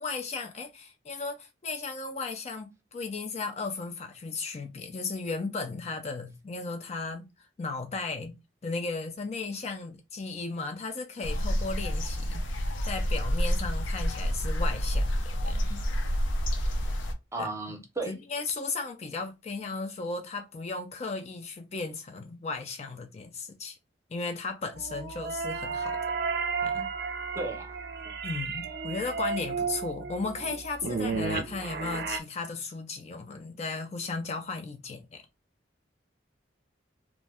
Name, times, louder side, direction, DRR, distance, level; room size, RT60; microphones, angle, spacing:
voice 1, 0.0-7.3 7.6-8.3 8.6-15.8 17.4-17.5 18.1-23.8 24.1-26.0 26.6-26.9 28.2-35.2, left 3 dB, 35° left, 0.4 m, -35 dB
sound 1, 11.2-17.1, equal, 85° left, 0.5 m, -28 dB
voice 2, 17.3-18.1 27.4-27.7, right 2 dB, 15° right, 0.6 m, -34 dB
sound 2, 24.7-32.2, right 4 dB, 55° right, 0.4 m, -33 dB
2.5 x 2.2 x 3.3 m
head